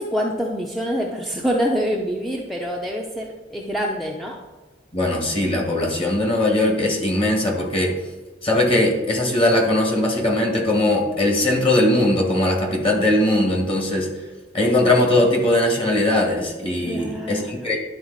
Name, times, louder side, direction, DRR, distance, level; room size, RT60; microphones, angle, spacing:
voice 1, 0.0-4.4 16.9-17.7, equal, ahead, -1 dB, 0.6 m, -26 dB
voice 2, 4.9-7.9 8.4-14.1 14.5-17.8, left 1 dB, 30° left, 1 dB, 1.6 m, -20 dB
11.0 x 4.0 x 4.0 m, 1.3 s
head